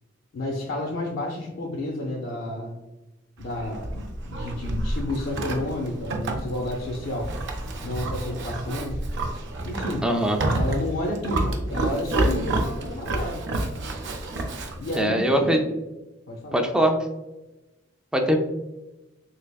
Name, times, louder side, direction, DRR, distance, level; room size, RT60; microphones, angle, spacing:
voice 1, 0.3-2.7 3.4-7.4 7.8-9.0 9.6-10.1 10.5-13.4 14.8-15.6 16.3-16.6, left 1 dB, 70° left, -1 dB, 0.5 m, -31 dB
Livestock farm animals working animals, 3.4-15.1, right 2 dB, 65° right, 0.5 m, -29 dB
voice 2, 10.0-10.4 14.9-15.6 16.5-17.0 18.1-18.4, equal, 5° right, 3 dB, 0.3 m, -21 dB
3.4 x 3.2 x 2.2 m, 1.0 s
head